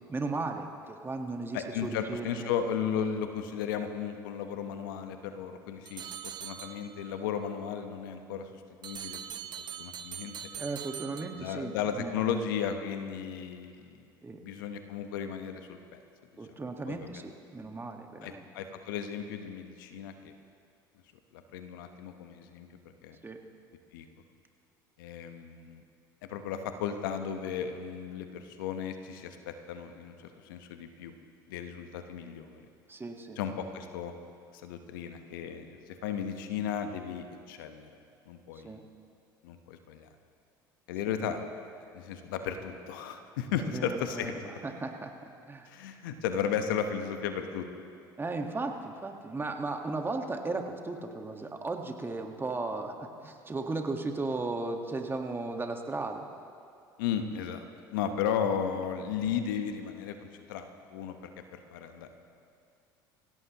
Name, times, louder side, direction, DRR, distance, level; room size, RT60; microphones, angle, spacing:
voice 1, 0.1-2.5 10.6-12.3 14.2-14.4 16.4-18.4 23.2-23.4 32.9-33.4 38.6-38.8 41.1-41.3 43.7-45.7 48.2-56.2, right 3 dB, 20° right, 4 dB, 1.6 m, -36 dB
voice 2, 1.5-9.2 9.8-10.4 11.4-14.0 14.4-16.0 16.9-17.2 18.2-20.3 21.3-22.7 23.0-23.2 23.9-24.1 25.0-25.8 26.3-31.1 31.5-32.6 33.4-34.1 34.5-37.9 38.3-38.8 39.4-40.1 40.9-41.4 41.9-44.4 45.7-47.7 57.0-62.2, left 8 dB, 75° left, 7 dB, 1.1 m, -35 dB
sound 1, 5.9-7.2 8.8-11.8, right 8 dB, 40° right, 0.8 m, -42 dB
25.0 x 16.5 x 3.0 m, 2.4 s
hypercardioid pair, 70°, 11 cm